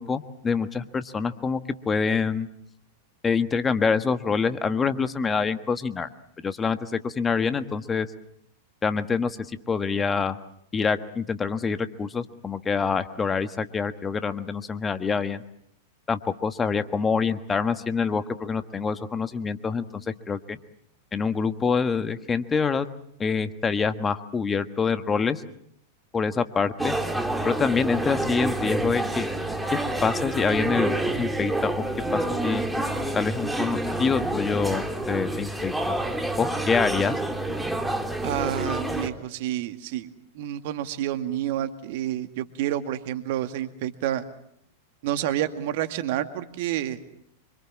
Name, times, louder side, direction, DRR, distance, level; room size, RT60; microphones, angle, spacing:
voice 1, 0.0-2.5 3.2-6.1 6.4-8.1 8.8-9.4 9.7-10.4 10.7-15.4 16.1-20.6 21.1-22.9 23.2-25.4 26.1-26.9 27.4-29.3 29.7-31.8 32.1-32.6 33.1-35.7 36.4-37.2, left 5 dB, 20° left, 10 dB, 1.5 m, -26 dB
sound 1, 26.8-39.1, right 1 dB, 5° right, 2.8 m, -28 dB
voice 2, 38.2-44.3 45.0-47.0, right 12 dB, 60° right, 9 dB, 2.0 m, -29 dB
26.5 x 25.5 x 7.4 m, 0.70 s
hypercardioid pair, 95°, 0 cm